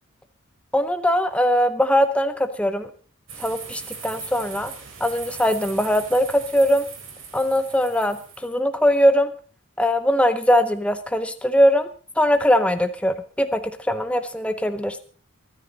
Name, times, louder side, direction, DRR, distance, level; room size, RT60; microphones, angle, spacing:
voice 1, 0.7-2.9 3.4-4.7 5.0-6.9 7.3-8.2 8.4-9.3 9.8-11.9 12.2-15.0, equal, 5° left, 9 dB, 0.7 m, -21 dB
sound 1, 3.3-8.5, right 6 dB, 65° right, 4.4 m, -39 dB
23.5 x 10.0 x 4.0 m, 0.41 s
head